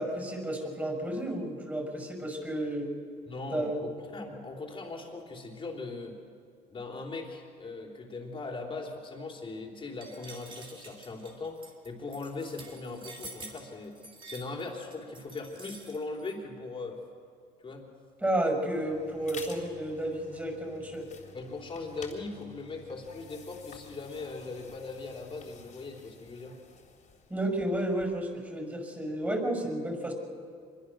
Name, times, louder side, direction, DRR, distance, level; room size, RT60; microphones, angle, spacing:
voice 1, 0.0-2.9 3.5-3.8 18.2-21.1 27.3-30.1, right 1 dB, 10° right, 2 dB, 5.7 m, -32 dB
voice 2, 3.3-6.2 6.7-14.0 14.2-17.0 17.6-17.9 21.3-26.6, left 3 dB, 30° left, 1 dB, 3.8 m, -39 dB
sound 1, 10.0-16.3, right 3 dB, 30° right, 3.4 m, -48 dB
sound 2, 18.5-28.3, left 6 dB, 45° left, 3.8 m, -51 dB
25.0 x 22.0 x 6.4 m, 2.3 s
cardioid pair, 110°, 17 cm